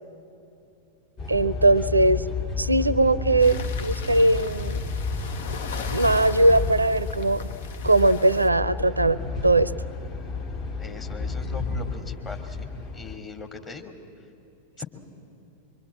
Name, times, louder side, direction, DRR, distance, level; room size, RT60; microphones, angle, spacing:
sound 1, 1.2-13.2, left 4 dB, 40° left, 2.5 m, -31 dB
voice 1, 1.3-2.2 2.6-4.8 5.9-7.4 7.8-9.7, right 2 dB, 85° right, 18 dB, 0.6 m, -20 dB
sound 2, 3.4-8.5, left 6 dB, 55° left, 1.0 m, -39 dB
voice 2, 10.8-13.9 14.8-14.9, left 3 dB, 25° left, 3 dB, 2.6 m, -40 dB
24.5 x 24.0 x 8.8 m, 2.7 s
figure-of-eight pair, 90°, 0 cm